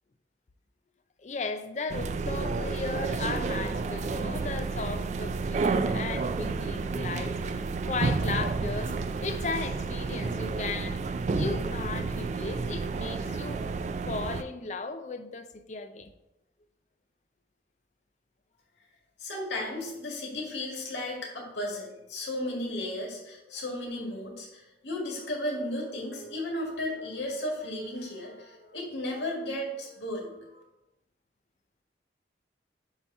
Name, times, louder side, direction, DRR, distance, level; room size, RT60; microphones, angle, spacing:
voice 1, 1.2-8.9 9.2-11.0 11.3-13.6 14.1-16.1, left 4 dB, 40° left, 0.5 m, -36 dB
sound 1, 1.9-14.4, right 4 dB, 40° right, 0.3 m, -30 dB
voice 2, 19.2-30.6, left 1 dB, 90° left, 1.9 m, -34 dB
7.9 x 2.9 x 5.4 m
head